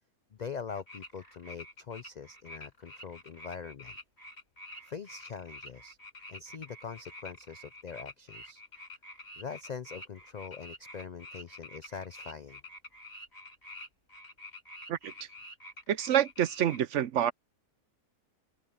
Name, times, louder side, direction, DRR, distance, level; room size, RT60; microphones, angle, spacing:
voice 1, 0.3-3.9 4.8-6.0 6.3-8.6 9.4-12.6, left 6 dB, 75° left, 0.4 m, -43 dB
sound 1, 0.7-16.8, left 1 dB, 45° left, 7.5 m, -48 dB
voice 2, 15.9-17.3, right 10 dB, 65° right, 0.9 m, -27 dB
open air
omnidirectional pair, 1.5 m